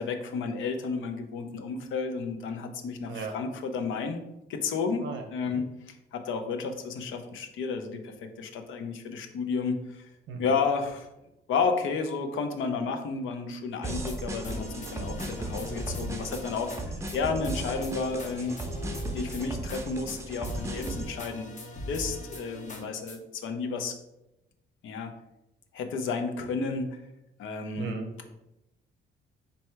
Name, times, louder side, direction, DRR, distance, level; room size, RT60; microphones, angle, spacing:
voice 1, 0.0-4.2 4.5-5.1 5.3-5.7 6.1-10.1 10.4-11.1 11.5-18.6 19.1-21.5 21.9-23.9 24.8-25.1 25.7-27.0 27.4-27.9, left 4 dB, 80° left, 6 dB, 0.6 m, -32 dB
sound 1, 13.8-14.2 14.4-16.8 17.1-17.2 17.4-19.8 20.1-20.2 20.4-23.2, left 1 dB, 40° left, 0.8 m, -40 dB
sound 2, 13.8-21.1, right 2 dB, 15° right, 0.5 m, -37 dB
voice 2, 27.8-28.3, right 4 dB, 75° right, 5 dB, 0.8 m, -36 dB
3.3 x 2.7 x 4.5 m, 0.91 s
cardioid pair, 90°, 20 cm